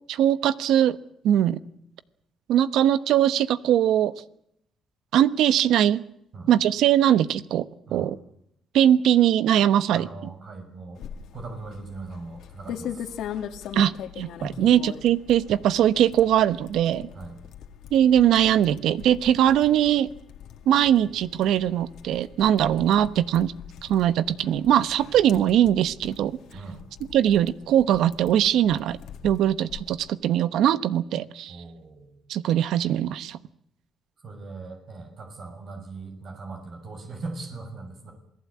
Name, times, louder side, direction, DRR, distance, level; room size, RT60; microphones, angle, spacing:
voice 1, 0.1-1.0 1.2-1.6 2.5-4.1 5.1-6.0 6.5-7.6 7.9-8.2 8.7-10.1 13.7-17.1 17.9-20.1 20.7-23.5 23.8-26.4 27.1-29.0 29.2-31.6 32.3-33.4, right 11 dB, 80° right, 15 dB, 1.0 m, -21 dB
voice 2, 9.9-11.0 11.3-13.1 14.4-14.6 17.1-17.4 26.5-26.8 31.5-32.3 34.2-38.1, right 3 dB, 55° right, 4 dB, 6.5 m, -39 dB
sound 1, 11.0-30.1, left 9 dB, 80° left, 2.3 m, -42 dB
27.0 x 18.0 x 8.7 m, 0.76 s
cardioid pair, 90°, 0 cm